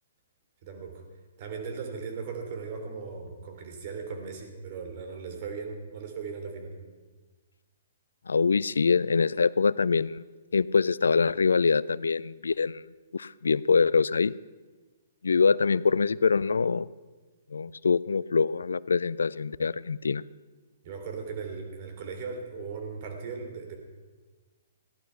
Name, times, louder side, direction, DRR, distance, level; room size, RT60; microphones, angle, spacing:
voice 1, 0.6-1.0 1.4-6.7 20.8-23.8, right 5 dB, 45° right, 4 dB, 3.1 m, -38 dB
voice 2, 8.3-10.2 10.5-12.8 13.1-14.3 15.2-16.9 17.5-20.2, left 5 dB, 80° left, 20 dB, 0.4 m, -24 dB
15.0 x 11.5 x 5.6 m, 1.3 s
hypercardioid pair, 130°, 0 cm